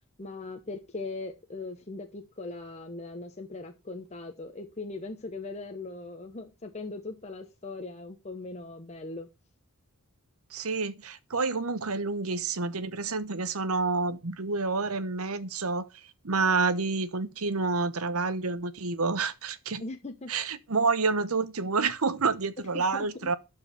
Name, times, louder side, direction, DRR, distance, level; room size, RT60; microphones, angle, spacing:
voice 1, 0.2-9.3 19.8-20.3 22.7-23.3, left 3 dB, 30° left, 1.0 m, -39 dB
voice 2, 10.5-15.9 16.2-19.8 20.3-23.4, right 4 dB, 75° right, 1.0 m, -28 dB
12.0 x 4.7 x 5.6 m
head